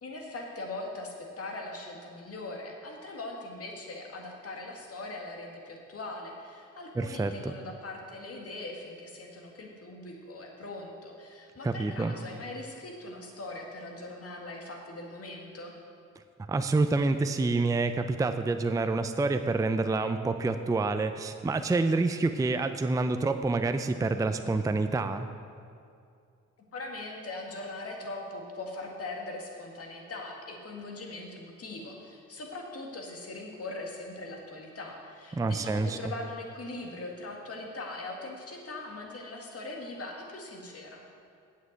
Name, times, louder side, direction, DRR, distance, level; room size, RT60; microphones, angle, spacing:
voice 1, 0.0-15.7 26.7-41.0, left 2 dB, 50° left, 0 dB, 2.0 m, -41 dB
voice 2, 7.0-7.5 11.6-12.2 16.5-25.3 35.3-36.1, right 3 dB, 10° right, 8 dB, 0.5 m, -27 dB
8.7 x 7.4 x 8.0 m, 2.4 s
cardioid pair, 95°, 31 cm